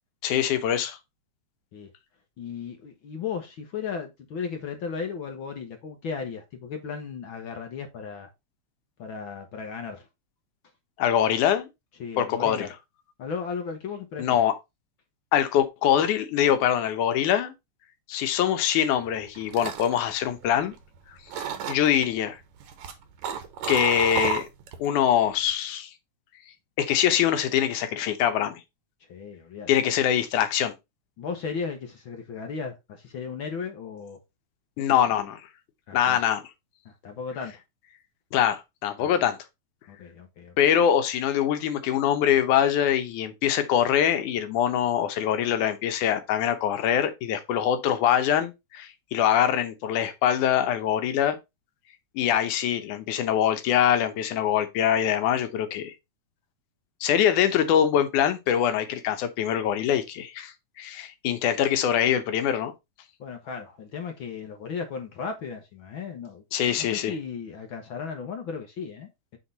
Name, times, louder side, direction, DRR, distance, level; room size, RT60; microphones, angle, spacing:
voice 1, 0.2-1.0 11.0-11.7 12.2-12.7 14.2-14.5 15.3-17.5 18.1-20.7 21.7-22.4 23.7-24.5 24.8-25.9 26.8-28.6 29.7-30.7 34.8-35.4 35.9-36.4 38.3-39.4 40.6-51.4 52.2-55.9 57.0-60.5 60.8-62.7 66.5-67.1, left 10 dB, 85° left, 2.4 m, -23 dB
voice 2, 2.4-8.3 9.0-10.1 12.0-12.7 13.2-14.4 29.1-29.7 31.2-34.2 34.9-35.2 35.9-36.2 36.8-37.5 39.0-39.1 39.9-40.6 63.2-69.4, left 6 dB, 60° left, 1.4 m, -35 dB
sound 1, 19.1-21.0 21.3-22.0 22.6-24.9 25.2-25.5, right 7 dB, 75° right, 2.3 m, -32 dB
7.7 x 3.7 x 4.1 m
omnidirectional pair, 3.4 m